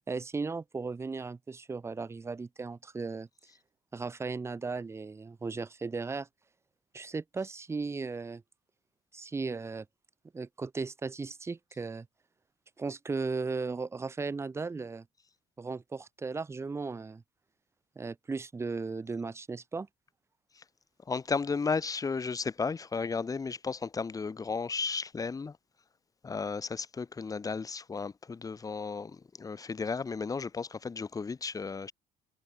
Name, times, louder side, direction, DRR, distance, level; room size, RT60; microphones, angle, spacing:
voice 1, 0.0-3.3 3.9-6.3 6.9-8.4 9.1-9.9 10.3-12.1 12.8-15.1 15.6-17.2 18.0-19.9, right 4 dB, 15° right, 0.5 m, -36 dB
voice 2, 21.1-25.6 26.2-31.9, left 5 dB, 20° left, 0.8 m, -34 dB
cardioid pair, 110°, 17 cm